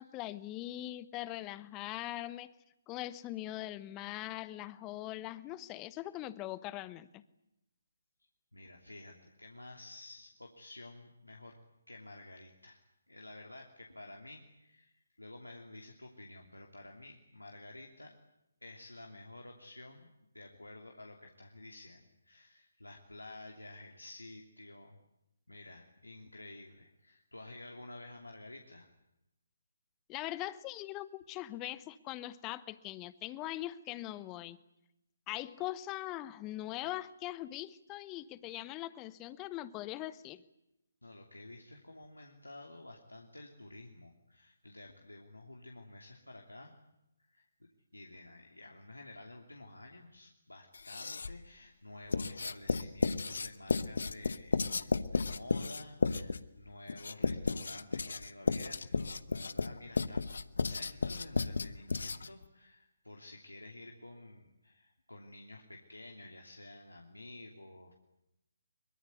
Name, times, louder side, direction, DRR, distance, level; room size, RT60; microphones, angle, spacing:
voice 1, 0.0-2.5 2.9-7.2 30.1-34.6 35.3-40.4, left 15 dB, 20° left, 16 dB, 1.0 m, -41 dB
voice 2, 8.5-11.6 11.9-12.8 13.1-18.1 18.6-25.0 25.5-28.9 41.0-46.7 47.3-47.4 47.9-60.2 60.6-68.0, left 2 dB, 85° left, 1 dB, 2.9 m, -51 dB
Writing, 50.7-51.5 52.1-62.4, left 4 dB, 60° left, 1.0 m, -33 dB
23.5 x 22.5 x 9.5 m, 0.89 s
figure-of-eight pair, 140°, 0 cm